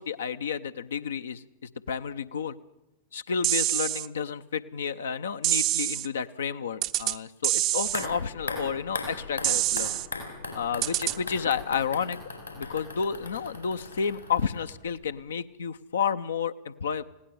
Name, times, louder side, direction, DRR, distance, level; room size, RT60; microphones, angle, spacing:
voice 1, 0.0-1.4 1.9-2.6 3.1-9.9 10.5-12.2 12.6-17.0, left 6 dB, 65° left, 10 dB, 0.6 m, -31 dB
sound 1, 3.4-4.1 5.4-6.1 6.8-7.2 7.4-8.1 9.4-10.1 10.8-11.2, right 15 dB, 40° right, 0.6 m, -26 dB
sound 2, 7.8-14.9 15.2-15.3, left 3 dB, 85° left, 4.7 m, -39 dB
19.5 x 17.0 x 7.8 m, 0.93 s
figure-of-eight pair, 90°, 0 cm